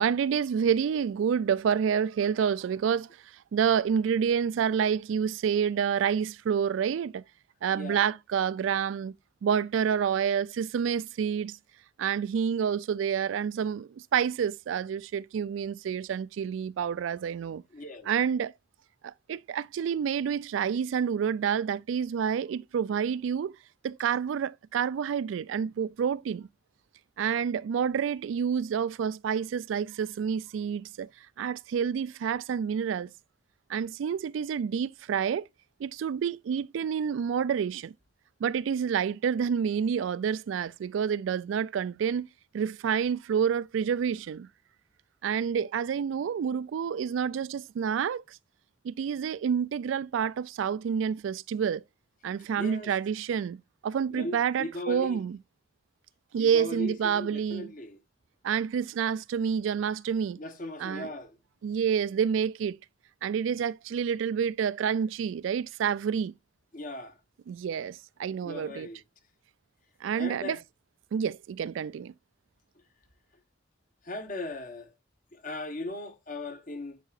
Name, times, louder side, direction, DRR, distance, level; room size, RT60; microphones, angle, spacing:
voice 1, 0.0-3.1 3.5-7.2 7.6-9.1 9.4-11.6 12.0-17.6 18.1-18.5 19.0-23.5 23.8-26.5 27.2-31.1 31.4-33.1 33.7-35.5 35.8-37.9 38.4-42.3 42.5-44.5 45.2-48.4 48.8-51.8 52.2-55.4 56.3-57.7 58.4-60.4 60.8-61.1 61.6-62.8 63.2-66.3 67.5-68.9 70.0-70.6 71.1-72.1, right 7 dB, 80° right, 0.3 m, -28 dB
voice 2, 7.7-8.1 17.7-18.1 52.6-52.9 54.1-55.2 56.4-58.0 60.4-61.4 66.7-67.2 68.4-69.0 70.1-70.6 74.0-74.9 75.3-77.0, left 2 dB, 45° left, 1.0 m, -38 dB
9.0 x 4.9 x 2.4 m
head